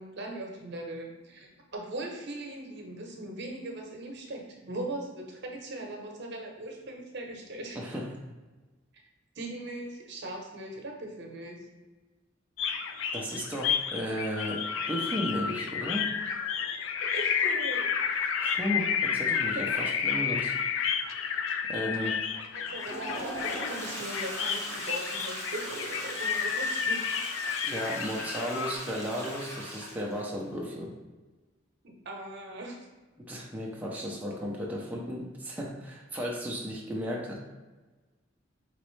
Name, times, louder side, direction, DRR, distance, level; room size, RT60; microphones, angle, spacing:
voice 1, 0.0-7.8 9.3-11.6 17.0-18.0 18.4-18.5 19.5-19.6 22.0-22.1 22.5-27.5 31.8-32.8, right 1 dB, 60° right, 1 dB, 0.9 m, -40 dB
voice 2, 7.8-8.1 13.1-16.1 18.4-20.6 21.1-21.4 21.7-22.2 27.6-30.9 33.2-37.4, equal, 10° right, -3 dB, 0.5 m, -34 dB
sound 1, 12.6-28.8, left 7 dB, 80° left, 0.4 m, -31 dB
Toilet flush, 22.6-30.3, equal, 15° left, 1.1 m, -39 dB
5.0 x 3.0 x 3.2 m, 1.2 s
head